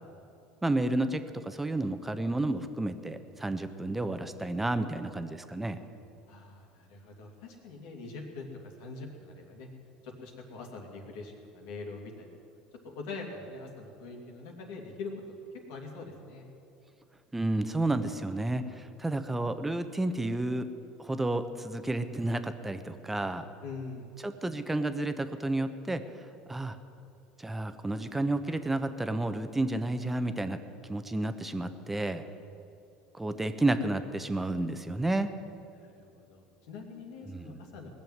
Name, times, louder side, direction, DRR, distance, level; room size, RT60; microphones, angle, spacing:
voice 1, 0.6-1.2 1.5-5.8 17.3-20.7 21.0-23.4 24.2-26.0 26.5-26.8 27.4-30.6 30.9-32.2 33.1-35.3 37.3-37.6, right 2 dB, 10° right, 9 dB, 1.0 m, -31 dB
voice 2, 6.3-9.7 10.0-12.3 12.8-15.1 15.7-16.5 23.6-24.1 33.4-33.5 35.7-37.9, left 3 dB, 80° left, 1 dB, 2.7 m, -43 dB
19.5 x 7.1 x 9.4 m, 2.6 s
supercardioid pair, 95°, 2 cm